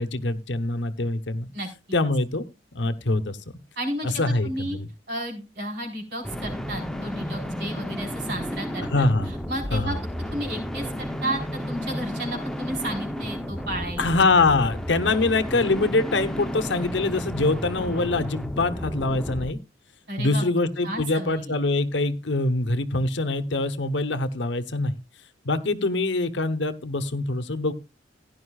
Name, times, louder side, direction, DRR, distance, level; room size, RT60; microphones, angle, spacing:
voice 1, 0.0-1.5 1.9-2.4 2.7-3.4 4.0-4.9 8.9-9.3 9.7-10.0 14.0-19.6 20.2-24.9 25.4-27.7, left 2 dB, 65° left, 12 dB, 1.0 m, -24 dB
voice 2, 1.5-2.0 3.8-4.8 5.1-8.9 9.5-10.0 10.3-14.1 20.1-20.4 20.8-21.6, right 1 dB, 60° right, 0 dB, 4.4 m, -32 dB
sound 1, 6.2-19.5, equal, 5° left, 0.8 m, -32 dB
16.0 x 11.0 x 2.4 m, 0.26 s
head